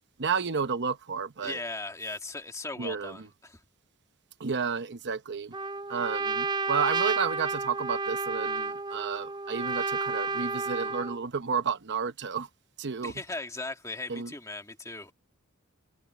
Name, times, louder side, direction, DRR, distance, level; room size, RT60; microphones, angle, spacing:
voice 1, 0.2-1.6 2.8-3.3 4.4-5.5 5.9-12.5 12.8-13.1 14.1-14.3, right 6 dB, 50° right, 0.8 m, -31 dB
voice 2, 1.4-3.6 13.0-15.1, left 2 dB, 15° left, 2.0 m, -38 dB
Trumpet, 5.5-11.2, right 4 dB, 20° right, 0.4 m, -31 dB
head